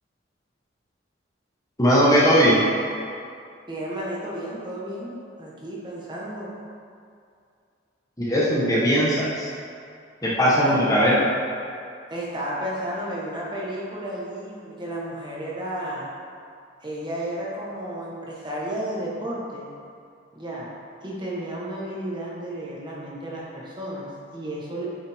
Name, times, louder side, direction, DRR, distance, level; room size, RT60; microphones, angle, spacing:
voice 1, 1.8-2.6 8.2-9.5 10.2-11.1, equal, 15° left, -6 dB, 1.0 m, -19 dB
voice 2, 3.7-6.5 10.3-10.8 12.1-16.1 16.8-19.7 20.3-20.7 21.0-24.8, right 1 dB, 20° right, -5 dB, 1.2 m, -33 dB
8.5 x 5.6 x 3.5 m, 2.4 s
head